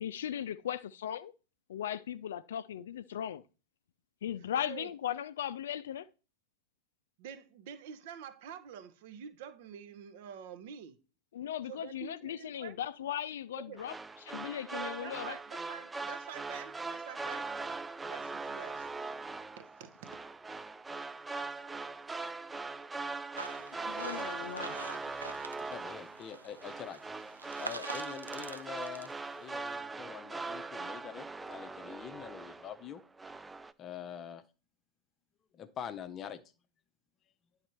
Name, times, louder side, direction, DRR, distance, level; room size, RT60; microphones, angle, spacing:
voice 1, 0.0-1.3 1.7-3.4 4.2-6.1 11.3-13.9 14.2-15.4 23.9-24.8, left 10 dB, 60° left, 0.4 m, -37 dB
voice 2, 4.6-4.9 7.2-11.0 11.6-12.8 13.5-13.8 14.7-17.5 18.1-19.0 19.6-20.1, right 8 dB, 50° right, 0.8 m, -47 dB
sound 1, 13.8-32.9 33.2-33.7, right 3 dB, 10° right, 0.4 m, -41 dB
sound 2, 23.4-25.9 26.1-29.7, right 3 dB, 80° right, 0.5 m, -46 dB
voice 3, 25.6-29.1 29.4-33.0 33.8-34.4 35.5-36.4, left 9 dB, 30° left, 0.7 m, -45 dB
10.0 x 4.0 x 4.3 m
figure-of-eight pair, 90°, 0 cm